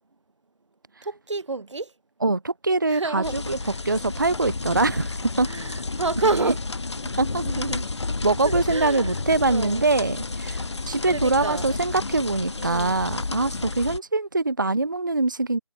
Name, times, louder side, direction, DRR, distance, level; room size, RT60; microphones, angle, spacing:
voice 1, 1.0-1.9 2.9-3.8 5.4-6.6 7.4-7.9 8.4-9.2 9.5-9.8 11.1-11.6 12.6-13.0, right 3 dB, 55° right, 1.0 m, -29 dB
voice 2, 2.2-3.6 3.8-5.5 7.2-7.4 8.2-15.6, right 3 dB, 35° right, 0.4 m, -23 dB
sound 1, 3.2-14.0, left 3 dB, 55° left, 1.1 m, -31 dB
figure-of-eight pair, 170°, 18 cm